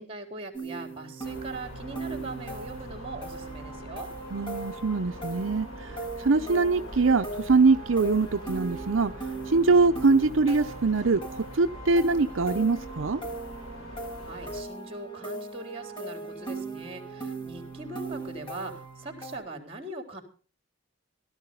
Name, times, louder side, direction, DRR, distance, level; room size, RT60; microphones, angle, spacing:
voice 1, 0.0-4.1 13.9-20.2, right 2 dB, 30° right, 5 dB, 3.9 m, -41 dB
sound 1, 0.5-19.4, right 3 dB, 25° left, 6.4 m, -39 dB
sound 2, 1.2-14.6, equal, 85° left, 3.4 m, -43 dB
voice 2, 4.3-9.1 9.5-13.2, right 3 dB, 70° right, 7 dB, 0.7 m, -23 dB
17.0 x 12.5 x 5.4 m, 0.39 s
head